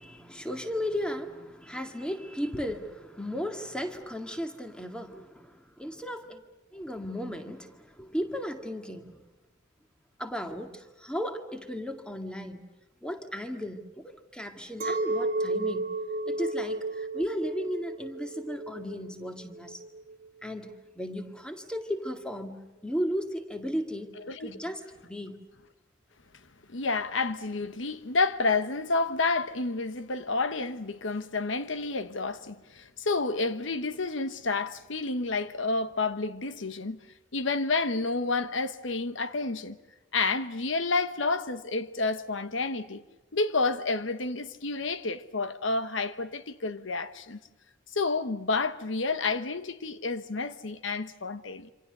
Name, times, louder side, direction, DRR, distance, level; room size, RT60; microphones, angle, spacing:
voice 1, 0.0-6.4 6.7-9.2 10.2-12.7 13.0-15.9 16.3-19.8 20.4-22.6 22.8-24.1 24.4-25.4, equal, 5° left, 2.0 m, -35 dB
Chink clink, 14.8-20.3, right 2 dB, 45° right, 1.7 m, -33 dB
voice 2, 24.3-24.6 26.7-37.0 37.3-39.8 40.1-43.0 43.3-47.4 47.9-51.7, left 3 dB, 75° left, 1.1 m, -30 dB
27.5 x 26.5 x 6.7 m
head